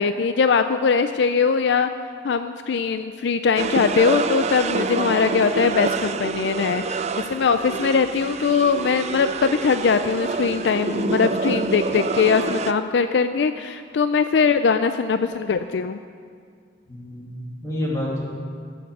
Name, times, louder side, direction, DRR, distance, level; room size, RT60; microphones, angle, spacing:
voice 1, 0.0-1.9 2.2-16.0, left 5 dB, 65° left, 10 dB, 0.4 m, -21 dB
sound 1, 3.6-12.7, right 4 dB, 35° right, 0.4 m, -27 dB
voice 2, 16.9-18.2, left 1 dB, 15° left, -4 dB, 2.5 m, -29 dB
16.0 x 6.6 x 6.7 m, 2.1 s
head